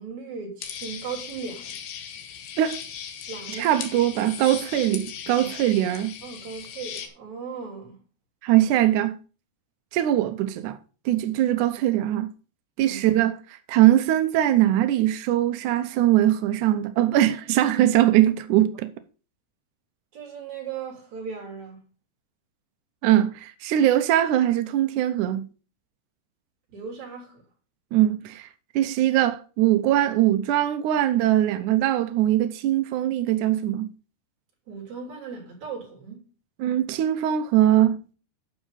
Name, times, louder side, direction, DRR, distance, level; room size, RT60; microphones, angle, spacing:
voice 1, 0.0-1.8 3.3-3.7 5.4-5.5 6.2-8.0 12.8-13.0 20.1-21.8 26.7-27.4 34.7-36.3, right 5 dB, 50° right, 4.4 m, -37 dB
sound 1, 0.6-7.1, left 8 dB, 75° left, 3.1 m, -38 dB
voice 2, 3.6-6.1 8.4-9.2 9.9-10.8 11.1-12.3 12.8-18.9 23.0-25.5 27.9-28.5 28.8-33.9 36.6-38.0, right 13 dB, 85° right, 1.7 m, -21 dB
10.0 x 6.3 x 5.5 m
omnidirectional pair, 4.5 m